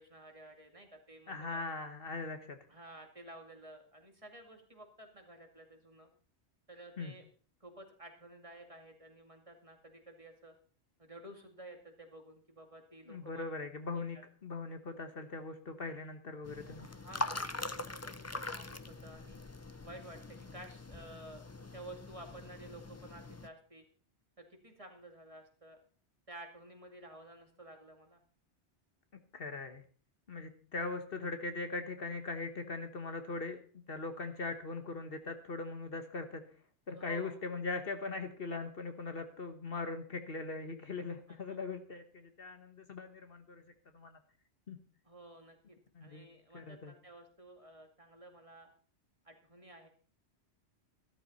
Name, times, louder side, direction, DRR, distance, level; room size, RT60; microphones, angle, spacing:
voice 1, 0.0-1.6 2.7-6.1 6.7-7.2 7.6-10.5 11.0-13.4 13.9-14.2 16.8-19.4 19.8-23.8 24.4-25.8 26.3-28.2 36.9-37.4 41.3-41.6 45.0-48.7 49.2-49.9, right 1 dB, 30° right, 3 dB, 2.3 m, -53 dB
voice 2, 1.3-2.6 7.0-7.1 13.1-16.9 29.3-29.8 30.3-36.4 36.9-43.6 43.9-44.2 44.7-44.8 45.9-46.2 46.5-46.9, left 3 dB, 55° left, 8 dB, 1.5 m, -40 dB
sound 1, 16.4-23.5, left 2 dB, 20° left, 0.5 m, -43 dB
14.0 x 13.0 x 4.2 m, 0.42 s
omnidirectional pair, 1.1 m